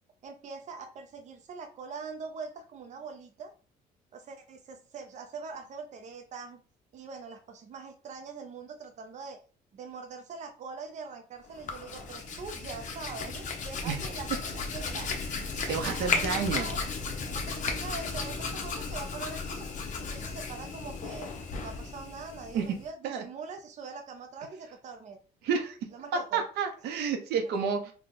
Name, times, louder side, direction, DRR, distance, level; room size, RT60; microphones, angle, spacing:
voice 1, 0.2-3.5 4.1-6.6 6.9-9.4 9.7-15.1 15.7-16.8 17.3-19.7 20.0-21.3 21.6-25.2 25.9-26.4, right 4 dB, 45° right, 6 dB, 0.6 m, -43 dB
Hands, 11.5-22.9, left 4 dB, 50° left, 0.8 m, -35 dB
voice 2, 15.3-16.7 22.5-22.7 23.0-23.2 25.4-25.8 26.3-27.9, right 6 dB, 80° right, 5 dB, 0.8 m, -30 dB
3.6 x 2.3 x 3.9 m, 0.38 s
cardioid pair, 110°, 17 cm